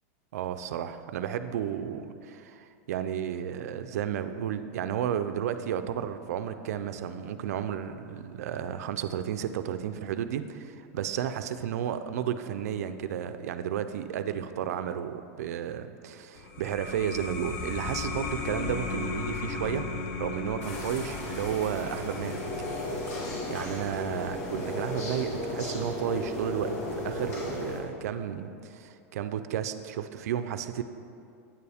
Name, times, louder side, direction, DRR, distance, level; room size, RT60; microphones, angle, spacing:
voice 1, 0.3-19.9 20.2-22.4 23.5-30.8, right 9 dB, 85° right, 10 dB, 0.4 m, -32 dB
sound 1, 16.3-27.5, left 4 dB, 40° left, 0.5 m, -38 dB
sound 2, 20.6-27.8, left 1 dB, 75° left, 1.8 m, -35 dB
8.9 x 6.9 x 3.5 m, 2.6 s
supercardioid pair, 175°, 8 cm